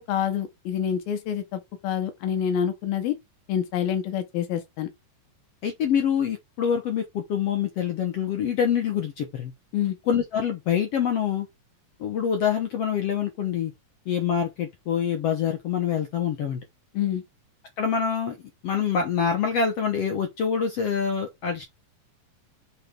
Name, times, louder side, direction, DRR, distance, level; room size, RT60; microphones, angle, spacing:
voice 1, 0.1-3.2 3.5-4.9 9.7-10.0 16.9-17.2, left 9 dB, 90° left, 3.1 m, -27 dB
voice 2, 5.6-9.5 10.1-11.5 12.0-13.7 14.1-16.6 17.8-18.4 18.6-21.6, left 7 dB, 65° left, 1.5 m, -25 dB
6.5 x 4.1 x 5.1 m
omnidirectional pair, 4.2 m